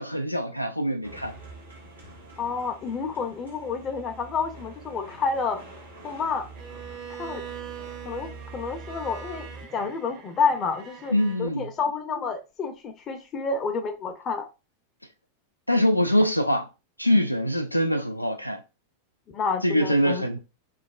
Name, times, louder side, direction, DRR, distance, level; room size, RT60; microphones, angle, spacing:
voice 1, 0.0-1.4 11.1-11.7 15.7-16.7 17.0-18.6 19.6-20.4, equal, 90° left, 0.3 m, -23 dB
sound 1, 1.0-9.7, right 3 dB, 85° right, 0.9 m, -45 dB
voice 2, 2.4-5.6 6.0-6.5 7.2-7.4 8.0-9.5 9.7-11.1 11.4-14.5 19.3-20.4, left 5 dB, 30° left, 0.5 m, -29 dB
Bowed string instrument, 6.6-11.5, right 8 dB, 40° right, 0.5 m, -42 dB
3.2 x 2.0 x 2.3 m
figure-of-eight pair, 90°, 0 cm